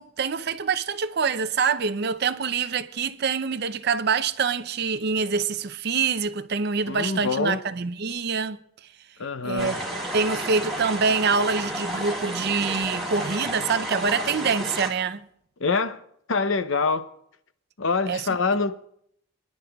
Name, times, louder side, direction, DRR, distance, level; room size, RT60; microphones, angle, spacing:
voice 1, 0.0-8.6 9.4-9.7 10.1-15.2 18.1-18.3, right 5 dB, 50° right, 0.5 m, -25 dB
voice 2, 6.9-7.6 9.2-9.8 15.6-16.0 16.3-17.1 17.8-18.9, left 4 dB, 60° left, 0.7 m, -25 dB
sound 1, 9.6-14.9, right 1 dB, ahead, 2.7 m, -31 dB
25.0 x 11.0 x 2.3 m
head